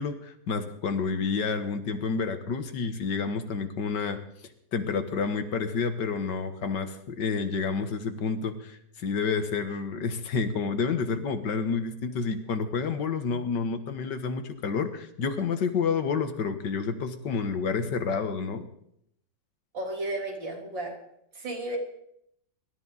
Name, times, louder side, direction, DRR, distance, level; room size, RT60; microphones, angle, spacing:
voice 1, 0.0-4.2 4.7-18.6, left 5 dB, 70° left, 8 dB, 2.0 m, -29 dB
voice 2, 19.7-21.0 21.3-21.8, right 1 dB, 85° right, 0 dB, 4.3 m, -33 dB
24.5 x 13.0 x 4.1 m, 0.73 s
omnidirectional pair, 2.0 m